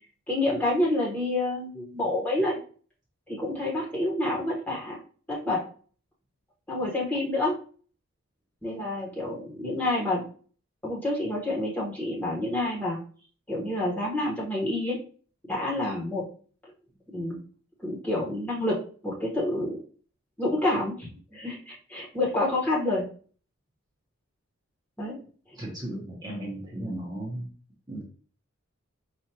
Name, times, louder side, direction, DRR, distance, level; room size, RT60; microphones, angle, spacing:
voice 1, 0.3-2.6 3.3-5.0 5.3-5.6 6.7-7.5 8.6-10.2 10.8-13.0 13.5-15.0 15.5-16.2 17.1-17.4 17.8-18.7 19.0-19.8 20.4-23.0 25.0-25.2, left 1 dB, 10° left, -5 dB, 1.2 m, -28 dB
voice 2, 25.5-27.5 27.9-28.0, right 1 dB, 20° right, -5 dB, 0.9 m, -35 dB
4.9 x 2.5 x 2.8 m, 0.42 s
head